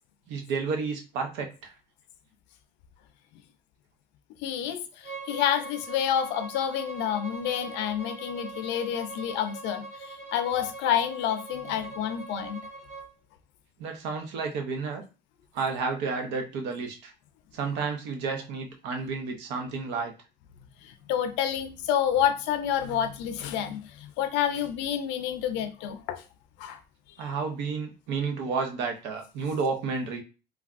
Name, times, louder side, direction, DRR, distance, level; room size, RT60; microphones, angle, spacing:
voice 1, 0.3-1.7 13.8-15.0 15.5-17.1 17.5-20.1 27.2-30.2, right 4 dB, 80° right, 0.8 m, -31 dB
voice 2, 4.4-12.6 20.8-26.2 26.6-26.8, left 9 dB, 80° left, 0.5 m, -29 dB
Bowed string instrument, 5.0-13.1, right 3 dB, 45° right, 0.9 m, -42 dB
3.3 x 2.3 x 2.4 m
cardioid pair, 155°, 18 cm